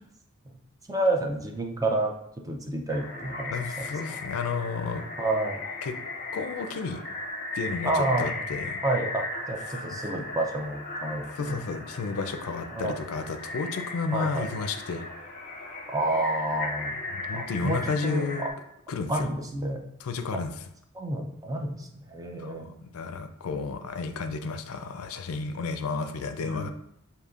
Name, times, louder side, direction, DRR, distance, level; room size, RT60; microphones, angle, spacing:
voice 1, 0.9-2.1 2.4-3.9 5.2-5.6 7.8-8.4 8.8-11.6 12.7-13.0 14.1-14.5 15.9-16.9 17.3-18.5 19.1-19.8 20.3-20.4 20.9-22.7 26.4-26.7, right 2 dB, 15° right, 2 dB, 0.5 m, -29 dB
sound 1, 2.9-18.5, left 2 dB, 40° left, 0.6 m, -37 dB
voice 2, 3.5-5.0 5.8-5.9 6.3-7.0 7.5-8.8 9.7-10.0 11.4-15.1 17.1-18.4 18.9-19.3 20.0-20.5 22.4-26.7, left 4 dB, 90° left, 8 dB, 0.4 m, -32 dB
6.6 x 2.8 x 2.4 m, 0.79 s
head